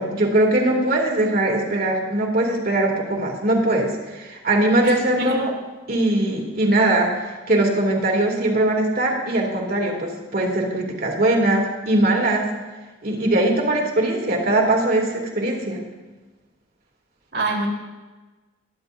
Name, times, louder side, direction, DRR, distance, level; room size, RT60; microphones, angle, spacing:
voice 1, 0.0-5.5 5.9-12.5 13.0-15.8, right 1 dB, 55° right, -1 dB, 2.7 m, -21 dB
voice 2, 4.8-5.4 17.3-17.7, right 2 dB, 75° right, -3 dB, 3.6 m, -25 dB
22.0 x 11.0 x 2.7 m, 1.2 s
head